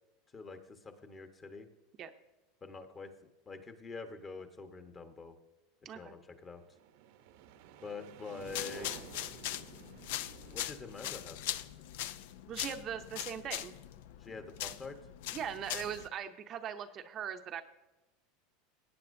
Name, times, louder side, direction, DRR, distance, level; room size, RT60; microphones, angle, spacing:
voice 1, 0.3-1.7 2.6-3.1 3.5-5.3 5.9-6.6 7.8-8.9 10.5-11.4 14.2-15.0, left 4 dB, 20° left, 7 dB, 1.2 m, -45 dB
sound 1, 6.3-13.0, right 9 dB, 70° right, 0.8 m, -54 dB
sound 2, 8.4-16.1, left 13 dB, 70° left, 0.5 m, -41 dB
voice 2, 12.5-13.7 15.3-17.6, right 8 dB, 35° right, 6 dB, 0.7 m, -40 dB
17.5 x 9.2 x 2.7 m, 1.0 s
supercardioid pair, 135°, 0 cm